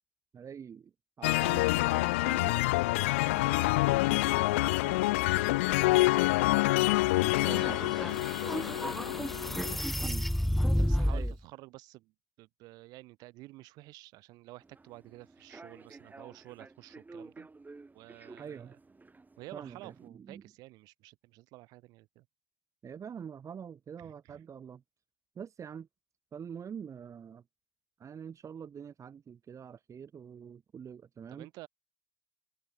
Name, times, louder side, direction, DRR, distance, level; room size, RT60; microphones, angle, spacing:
voice 1, 0.3-2.7 7.2-7.3 10.0-10.3 11.1-11.3 18.4-18.7 19.5-20.4 22.8-24.8 25.4-25.9 26.3-27.4 28.0-31.5, right 7 dB, 50° right, 5.7 m, -45 dB
sound 1, 1.2-9.8, left 21 dB, 90° left, 0.6 m, -27 dB
voice 2, 3.1-9.3 9.7-9.9 10.6-12.1 12.4-17.5 17.9-18.8 19.4-22.2 24.0-24.4 31.3-31.7, right 20 dB, 75° right, 3.1 m, -51 dB
sound 2, 7.3-11.4, equal, 5° left, 1.2 m, -31 dB
Human voice / Subway metro underground, 14.6-20.1, right 3 dB, 25° right, 5.0 m, -52 dB
hypercardioid pair, 50°, 7 cm